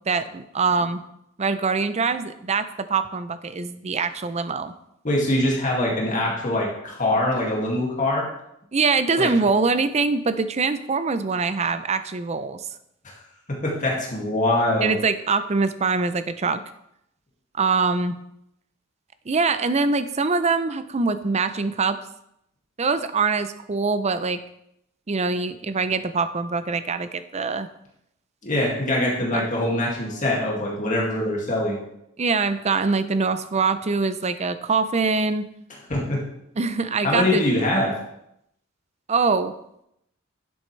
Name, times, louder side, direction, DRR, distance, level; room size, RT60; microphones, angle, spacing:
voice 1, 0.1-1.0 1.4-4.7 8.7-12.6 14.8-16.6 17.6-18.1 19.3-22.0 22.8-24.4 25.1-27.7 29.3-29.4 32.2-35.5 36.6-37.5 39.1-39.5, right 4 dB, 30° right, 11 dB, 0.5 m, -23 dB
voice 2, 5.0-8.3 9.2-9.3 13.5-14.9 28.4-31.8 35.9-36.3 37.0-38.0, left 1 dB, 40° left, -3 dB, 2.2 m, -23 dB
10.5 x 7.8 x 3.3 m, 0.79 s
head